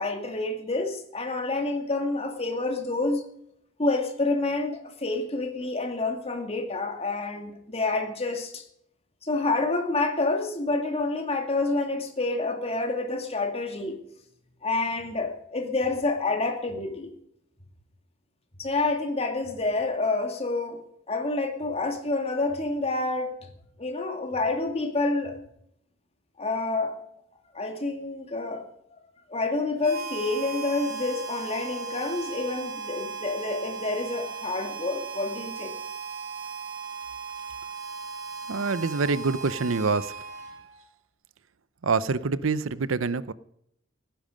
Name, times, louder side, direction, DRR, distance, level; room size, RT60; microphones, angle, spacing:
voice 1, 0.0-3.2 3.8-8.6 9.2-14.0 14.6-17.1 18.6-20.8 21.1-23.3 23.8-25.4 26.4-26.9 27.5-28.7 28.9-29.0 29.3-35.7, left 3 dB, 30° left, 4 dB, 2.3 m, -28 dB
Harmonica, 29.8-40.8, right 5 dB, 55° right, 3.7 m, -37 dB
voice 2, 38.5-40.1 41.8-43.3, right 4 dB, 80° right, 17 dB, 0.6 m, -26 dB
17.5 x 10.5 x 5.1 m, 0.73 s
head